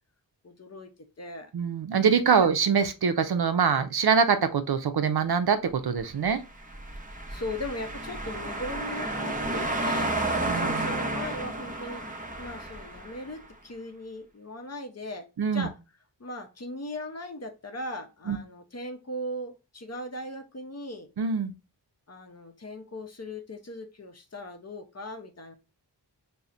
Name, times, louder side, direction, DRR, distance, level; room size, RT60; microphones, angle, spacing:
voice 1, 0.4-0.9 1.2-1.5 2.4-2.5 7.3-10.2 10.5-15.8 16.2-21.1 22.1-25.5, left 1 dB, 40° left, 0.6 m, -38 dB
voice 2, 1.5-6.4 10.4-10.9 15.4-15.7 18.3-18.4 21.2-21.5, right 6 dB, 65° right, 0.5 m, -24 dB
sound 1, 6.6-13.3, right 2 dB, 20° right, 0.7 m, -31 dB
5.5 x 2.1 x 2.4 m
wide cardioid pair, 50°, 41 cm